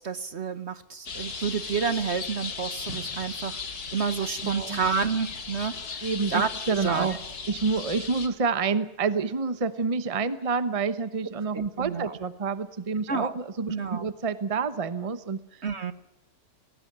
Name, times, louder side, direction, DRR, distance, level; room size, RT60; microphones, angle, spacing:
voice 1, 0.0-3.6 3.9-5.7 6.3-6.5 6.8-7.1 11.5-12.1 13.1-13.3 13.7-14.0 15.6-15.9, right 5 dB, 50° right, 12 dB, 1.2 m, -29 dB
sound 1, 1.1-8.3, left 5 dB, 80° left, 2.5 m, -36 dB
voice 2, 4.4-4.8 6.0-7.2 7.5-15.7, right 5 dB, 25° right, 13 dB, 0.9 m, -28 dB
23.5 x 17.5 x 10.0 m, 0.98 s
omnidirectional pair, 1.6 m